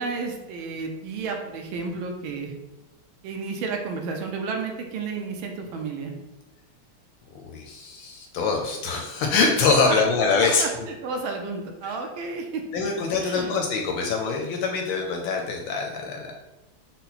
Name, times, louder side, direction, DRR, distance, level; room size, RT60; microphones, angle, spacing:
voice 1, 0.0-2.5 3.2-6.1 9.8-10.0 10.3-12.8 13.2-13.5, right 4 dB, 75° right, 3 dB, 1.3 m, -32 dB
voice 2, 7.3-10.6 11.8-11.9 12.7-16.3, left 4 dB, 75° left, 2 dB, 1.1 m, -24 dB
5.6 x 2.1 x 4.0 m, 1.0 s
omnidirectional pair, 2.4 m